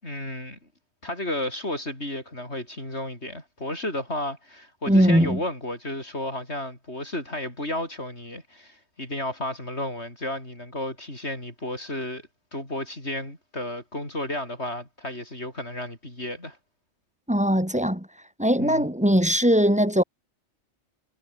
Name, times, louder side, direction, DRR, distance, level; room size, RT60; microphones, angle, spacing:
voice 1, 0.0-0.6 1.0-16.6 18.6-18.8, left 1 dB, 65° left, 8.1 m, -33 dB
voice 2, 4.9-5.4 17.3-18.1 18.4-20.0, equal, 5° right, 3.7 m, -20 dB
omnidirectional pair, 1.2 m